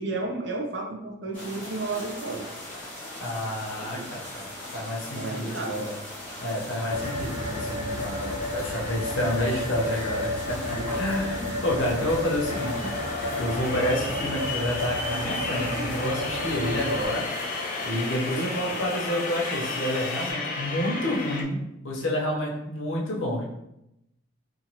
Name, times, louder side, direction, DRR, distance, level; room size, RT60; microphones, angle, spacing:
voice 1, 0.0-2.5 3.8-4.1 5.1-5.9 10.6-11.0 18.4-18.8, right 3 dB, 60° right, 1 dB, 0.5 m, -33 dB
sound 1, 1.3-20.3, left 1 dB, 10° left, 1.1 m, -40 dB
voice 2, 3.2-5.9 6.4-12.9 13.4-17.6 17.8-21.6 21.8-23.4, left 1 dB, 75° left, -2 dB, 0.8 m, -29 dB
sound 2, 6.9-17.1, left 1 dB, 85° right, 1.1 m, -32 dB
sound 3, 12.5-21.4, left 3 dB, 40° left, 0.4 m, -33 dB
3.0 x 2.5 x 2.8 m, 0.84 s
head